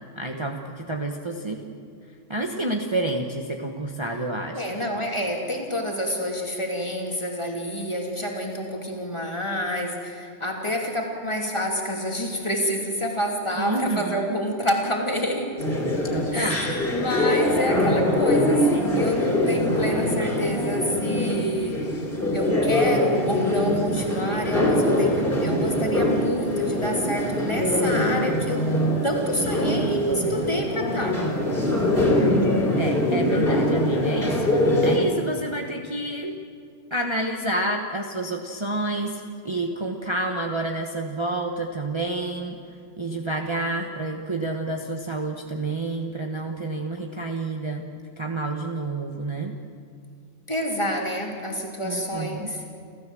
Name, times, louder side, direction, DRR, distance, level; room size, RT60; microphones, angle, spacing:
voice 1, 0.2-1.6 2.3-4.6 13.6-14.4 16.1-16.7 32.7-36.3 36.9-42.6 43.0-47.9 48.2-49.5 51.8-52.5, right 2 dB, 25° right, 2 dB, 1.2 m, -29 dB
voice 2, 4.5-15.5 16.3-21.9 22.3-28.7 29.0-31.2 50.5-52.6, equal, 25° left, 0 dB, 3.0 m, -28 dB
sound 1, 15.6-35.0, left 1 dB, 45° left, 4.1 m, -23 dB
29.0 x 13.5 x 7.7 m, 2.3 s
omnidirectional pair, 1.3 m